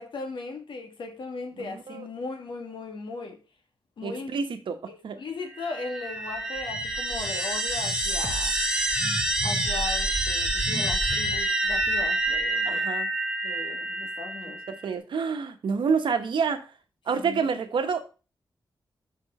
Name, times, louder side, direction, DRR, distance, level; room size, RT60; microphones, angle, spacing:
voice 1, 0.0-3.4 4.0-4.4 4.9-8.5 9.4-12.8 13.4-14.6 17.2-17.5, left 3 dB, 75° left, 1.5 m, -37 dB
voice 2, 1.6-2.1 4.0-5.2 12.6-13.1 14.7-16.7 17.1-18.0, right 5 dB, 75° right, 1.1 m, -28 dB
sound 1, 5.6-14.8, right 1 dB, 10° right, 1.1 m, -27 dB
6.8 x 4.7 x 5.4 m
wide cardioid pair, 175°, 8 cm